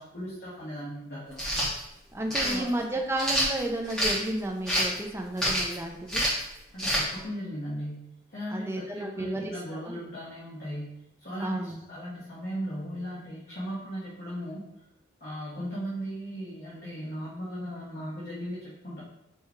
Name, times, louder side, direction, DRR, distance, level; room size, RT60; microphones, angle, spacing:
voice 1, 0.0-1.5 2.4-2.7 6.7-14.7 15.2-19.0, equal, 50° left, -9 dB, 1.1 m, -37 dB
sound 1, 1.3-1.7 2.3-2.6 3.2-4.2 4.7-5.0 5.4-5.7 6.1-6.4 6.8-7.0, equal, 5° left, 0.8 m, -26 dB
voice 2, 2.1-6.2 8.5-10.0 11.4-11.8, right 1 dB, 10° right, 2 dB, 0.4 m, -32 dB
4.6 x 2.3 x 4.4 m, 0.86 s
head